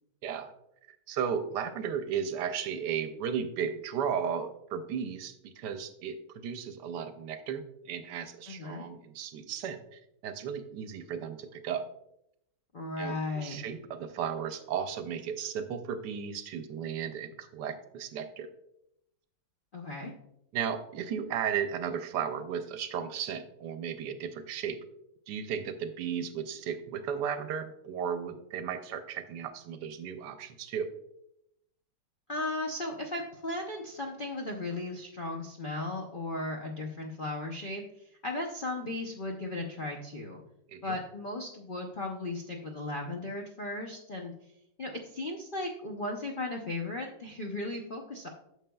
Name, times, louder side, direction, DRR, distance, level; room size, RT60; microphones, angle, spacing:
voice 1, 0.2-0.5 1.1-11.8 13.0-18.5 20.5-24.8 25.3-30.9 40.7-41.0, right 7 dB, 75° right, 9 dB, 1.2 m, -35 dB
voice 2, 8.5-8.8 12.7-13.6 19.7-20.1 32.3-37.8 38.2-40.4 40.8-44.3 44.8-48.3, left 2 dB, 60° left, 0 dB, 0.5 m, -36 dB
9.0 x 6.5 x 2.3 m, 0.79 s
omnidirectional pair, 1.9 m